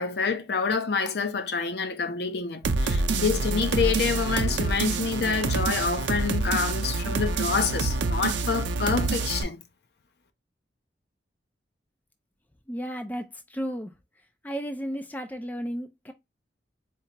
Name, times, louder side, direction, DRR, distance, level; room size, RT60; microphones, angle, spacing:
voice 1, 0.0-9.6, left 5 dB, 60° left, 0.6 m, -27 dB
sound 1, 2.6-9.4, right 3 dB, 80° right, 0.5 m, -27 dB
voice 2, 12.7-13.9 14.4-16.1, equal, 10° left, 0.4 m, -33 dB
4.5 x 2.3 x 2.8 m
head